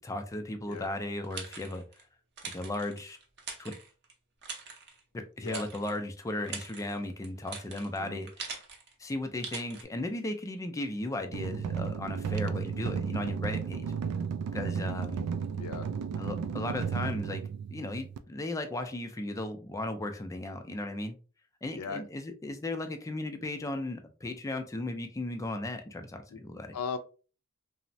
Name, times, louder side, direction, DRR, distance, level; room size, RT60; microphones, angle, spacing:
voice 1, 0.0-1.8 2.5-3.2 3.6-3.7 5.1-8.6 9.0-13.9 14.5-15.3 16.2-17.4 17.7-21.2 21.6-26.7, left 1 dB, 15° left, 6 dB, 0.3 m, -36 dB
sound 1, 0.7-2.0 2.4-4.1 4.4-5.0 5.5-6.0 6.3-8.9 9.4-9.8, right 5 dB, 50° right, 0.6 m, -43 dB
sound 2, 11.3-18.2, right 6 dB, 90° right, 0.3 m, -34 dB
voice 2, 15.5-15.9 21.7-22.0 26.3-26.4 26.7-27.0, left 5 dB, 80° left, 9 dB, 0.4 m, -37 dB
3.0 x 2.0 x 2.6 m, 0.36 s
head